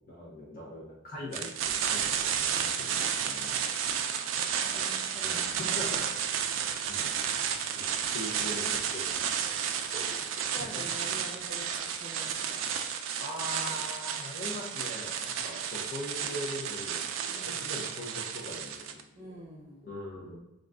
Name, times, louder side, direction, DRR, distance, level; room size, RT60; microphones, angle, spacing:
voice 1, 0.1-1.5 1.8-3.8 5.2-6.0 6.5-7.1 7.7-9.5 10.7-10.8 13.2-19.3 19.8-20.4, left 1 dB, 45° left, -6 dB, 0.9 m, -41 dB
sound 1, 1.3-19.0, right 8 dB, 70° right, 0.4 m, -32 dB
voice 2, 4.3-5.9 8.4-8.5 9.8-12.6 17.3-17.7 19.2-19.9, equal, 20° right, -4 dB, 0.7 m, -46 dB
sound 2, 5.5-11.5, right 1 dB, 80° left, 1.3 m, -56 dB
4.0 x 2.5 x 3.4 m, 0.96 s
head